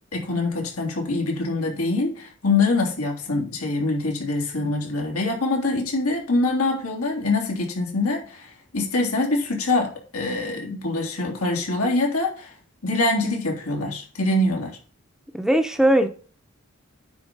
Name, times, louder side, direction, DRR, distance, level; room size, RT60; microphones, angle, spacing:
voice 1, 0.1-12.5 12.8-14.8, left 2 dB, 85° left, 3.1 m, -24 dB
voice 2, 15.3-16.1, right 1 dB, ahead, 0.7 m, -19 dB
9.5 x 4.4 x 5.3 m
head